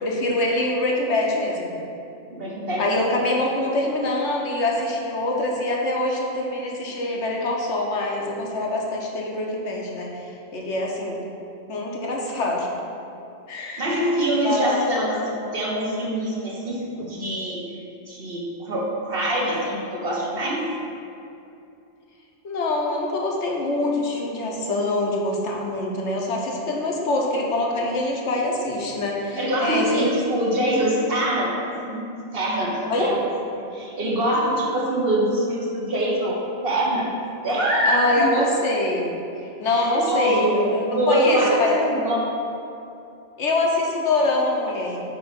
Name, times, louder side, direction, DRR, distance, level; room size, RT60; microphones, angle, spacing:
voice 1, 0.0-1.7 2.8-11.2 11.7-12.7 13.5-13.9 14.4-14.9 22.4-30.1 32.8-33.2 37.9-41.8 43.4-45.0, left 2 dB, 65° left, -1 dB, 1.1 m, -24 dB
voice 2, 2.3-2.9 13.8-17.7 18.1-20.7 29.4-31.6 31.8-32.0 32.3-33.1 33.7-37.2 37.4-38.3 39.7-40.6 40.9-41.6 41.9-42.3, right 1 dB, 50° right, -4 dB, 1.2 m, -24 dB
7.8 x 3.1 x 5.2 m, 2.7 s
omnidirectional pair, 1.3 m